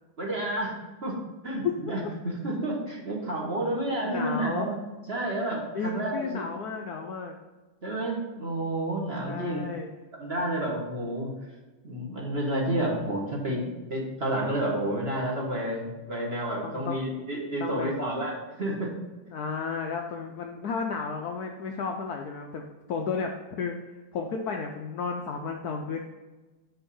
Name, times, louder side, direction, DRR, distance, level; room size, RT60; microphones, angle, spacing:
voice 1, 0.2-0.7 1.0-1.2 1.4-4.8 5.1-6.4 7.8-9.6 10.1-11.3 11.8-18.9, right 1 dB, 35° right, -3 dB, 1.4 m, -30 dB
voice 2, 1.6-2.1 4.0-4.7 5.7-7.4 9.3-9.9 16.6-17.0 17.6-18.0 19.3-26.0, left 5 dB, 85° left, 3 dB, 0.8 m, -33 dB
6.3 x 5.8 x 5.4 m, 1.2 s
omnidirectional pair, 2.4 m